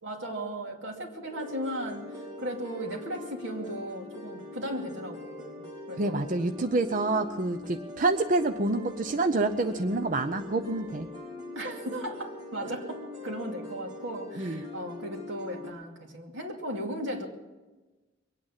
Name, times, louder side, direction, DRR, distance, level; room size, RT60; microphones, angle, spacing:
voice 1, 0.0-6.3 11.5-17.3, right 1 dB, 85° right, 1 dB, 2.6 m, -36 dB
sound 1, 1.3-15.7, left 2 dB, 25° right, 4.0 m, -42 dB
voice 2, 6.0-11.1 14.4-14.6, right 2 dB, 45° right, 8 dB, 0.6 m, -27 dB
22.5 x 8.9 x 7.3 m, 1.2 s
head